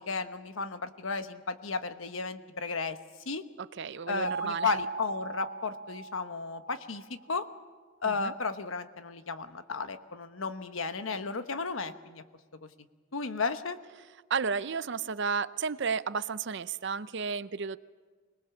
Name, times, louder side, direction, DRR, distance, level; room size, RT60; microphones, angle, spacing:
voice 1, 0.0-3.0 3.3-3.4 4.1-7.5 8.0-12.2 12.6-12.7 13.1-13.8, left 4 dB, 85° left, 10 dB, 1.1 m, -34 dB
voice 2, 3.6-4.7 8.1-8.3 14.3-17.8, right 5 dB, 60° right, 15 dB, 0.6 m, -32 dB
sound 1, 4.2-7.0, right 5 dB, 80° right, 1.2 m, -39 dB
25.5 x 19.5 x 7.1 m, 1.4 s
head